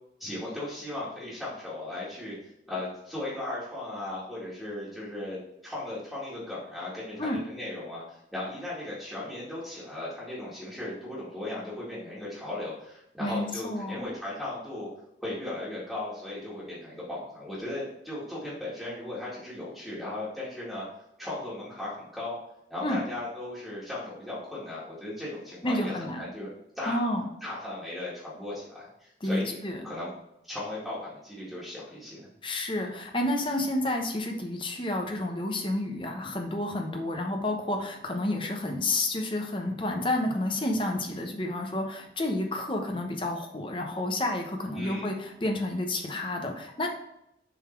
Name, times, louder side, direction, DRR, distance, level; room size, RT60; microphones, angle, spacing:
voice 1, 0.2-14.9 15.2-20.8 21.2-22.4 22.7-27.1 27.4-29.6 29.8-30.1 30.4-32.3 44.7-45.1, left 1 dB, ahead, -9 dB, 2.1 m, -37 dB
voice 2, 13.2-14.1 22.8-23.0 25.6-26.2 26.9-27.3 29.2-29.8 32.4-46.9, left 1 dB, 30° left, 3 dB, 0.9 m, -30 dB
7.2 x 4.1 x 4.5 m, 0.81 s
head